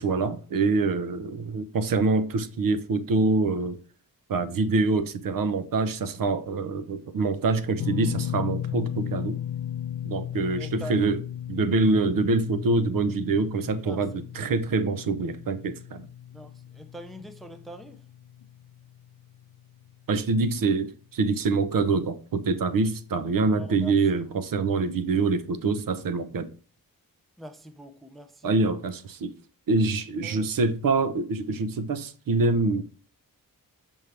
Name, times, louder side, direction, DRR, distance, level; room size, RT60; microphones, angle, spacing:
voice 1, 0.0-3.8 4.3-9.4 10.0-11.2 11.5-16.1 20.1-26.5 28.4-29.3 29.7-32.8, right 3 dB, 65° right, 0.7 m, -25 dB
sound 1, 7.8-20.0 20.3-20.5 22.2-22.3, left 10 dB, 75° left, 0.5 m, -36 dB
voice 2, 10.5-11.0 13.8-14.2 16.3-18.0 23.5-24.2 27.4-28.6 30.2-30.5, equal, ahead, 0.4 m, -43 dB
6.1 x 5.4 x 3.3 m
wide cardioid pair, 170°, 35 cm